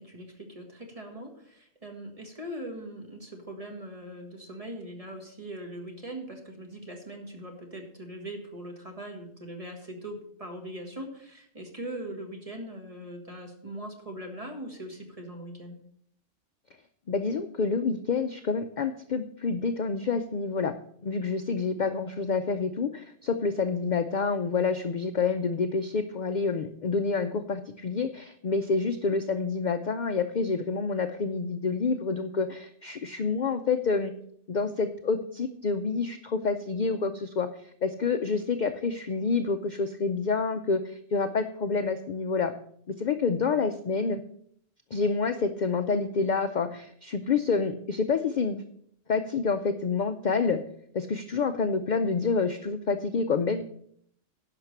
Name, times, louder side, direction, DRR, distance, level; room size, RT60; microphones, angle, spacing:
voice 1, 0.0-15.8, right 1 dB, 30° right, 3 dB, 1.7 m, -41 dB
voice 2, 17.1-20.7 21.0-34.1 34.5-37.5 37.8-42.5 42.9-44.2 44.9-48.6 49.1-50.6 50.9-53.7, left 4 dB, 50° left, 9 dB, 0.5 m, -28 dB
10.5 x 5.9 x 6.6 m, 0.65 s
omnidirectional pair, 1.3 m